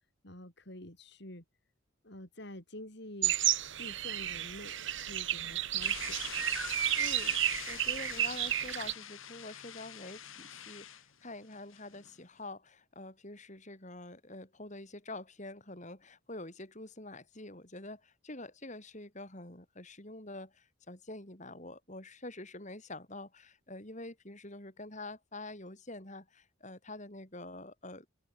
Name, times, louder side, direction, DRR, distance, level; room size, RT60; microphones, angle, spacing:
voice 1, 0.2-1.4 2.0-3.3 3.8-6.2, left 1 dB, 55° left, 5.2 m, -48 dB
sound 1, 3.2-8.9, right 12 dB, 60° right, 1.4 m, -32 dB
sound 2, 5.8-12.2, left 10 dB, 75° left, 6.2 m, -45 dB
voice 2, 7.0-28.1, left 2 dB, 35° left, 4.4 m, -46 dB
head